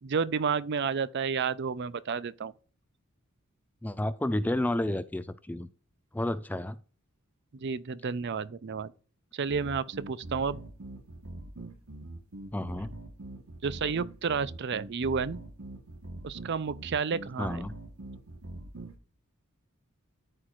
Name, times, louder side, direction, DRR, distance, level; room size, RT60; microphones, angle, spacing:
voice 1, 0.0-2.5 7.5-8.9 9.3-10.6 13.6-15.4 16.2-17.7, right 5 dB, 55° right, 0.5 m, -31 dB
voice 2, 3.8-5.7 6.1-6.8 12.5-12.9 17.4-17.7, left 1 dB, 10° left, 0.3 m, -31 dB
sound 1, 9.5-19.0, right 1 dB, 80° right, 1.4 m, -43 dB
13.0 x 4.5 x 2.5 m
head